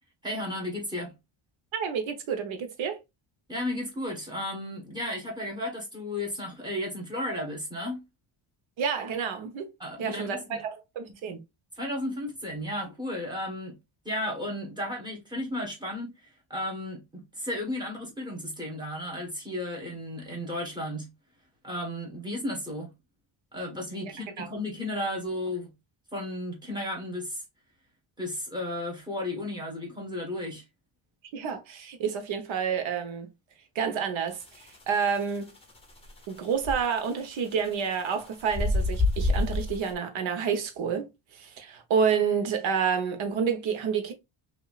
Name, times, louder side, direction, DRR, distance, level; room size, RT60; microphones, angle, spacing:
voice 1, 0.2-1.1 3.5-8.0 9.8-10.6 11.8-13.8 14.0-21.1 21.6-22.9 23.5-25.7 26.1-27.4 28.2-30.6, left 1 dB, 10° right, 1.4 m, -34 dB
voice 2, 1.7-3.0 8.8-9.7 10.0-11.4 24.0-24.5 31.3-33.3 33.7-35.5 36.3-44.1, right 6 dB, 75° right, 1.2 m, -29 dB
sound 1, 34.3-39.9, left 2 dB, 10° left, 0.8 m, -28 dB
5.5 x 2.8 x 2.4 m
cardioid pair, 175°, 47 cm